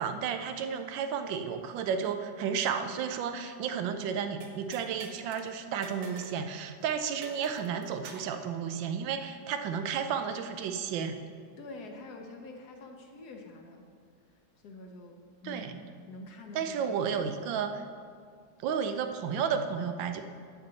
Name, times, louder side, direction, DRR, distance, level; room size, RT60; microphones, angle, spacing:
voice 1, 0.0-11.2 15.4-15.7 16.5-17.8 18.6-20.2, right 7 dB, 90° right, 7 dB, 1.4 m, -32 dB
sound 1, 4.4-5.4 5.8-6.4 6.7-6.8 7.2-8.4, right 3 dB, 60° right, 1.2 m, -47 dB
voice 2, 11.6-13.9 14.6-17.1 17.5-17.6, left 2 dB, 65° left, 2 dB, 1.3 m, -46 dB
8.6 x 7.2 x 4.0 m, 2.1 s
omnidirectional pair, 2.0 m